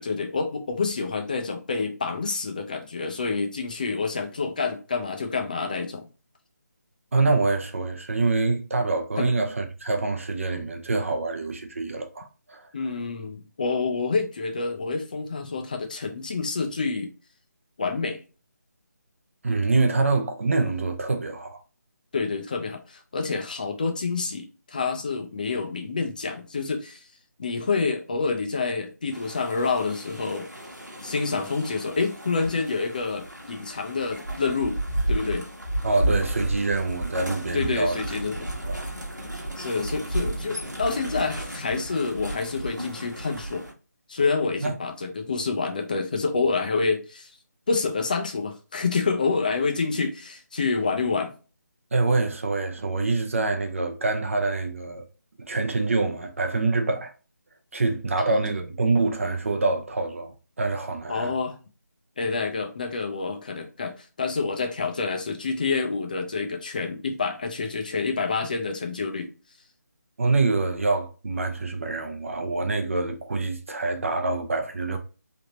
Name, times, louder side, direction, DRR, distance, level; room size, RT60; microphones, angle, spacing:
voice 1, 0.0-6.1 9.2-9.3 12.7-17.1 17.8-18.2 22.1-27.0 27.4-30.5 31.0-34.8 35.1-35.4 37.5-38.5 39.6-43.6 44.1-47.3 47.7-51.3 58.2-58.3 61.1-61.5 62.2-69.3, left 4 dB, 30° left, 0.4 m, -28 dB
voice 2, 7.1-12.7 19.4-21.6 35.8-38.0 38.6-38.9 44.6-44.8 51.9-55.0 55.4-57.1 57.7-61.3 70.2-75.0, right 3 dB, 50° right, 0.7 m, -25 dB
sound 1, 29.1-43.7, right 1 dB, 90° right, 1.2 m, -33 dB
3.4 x 2.7 x 2.8 m
figure-of-eight pair, 150°, 9 cm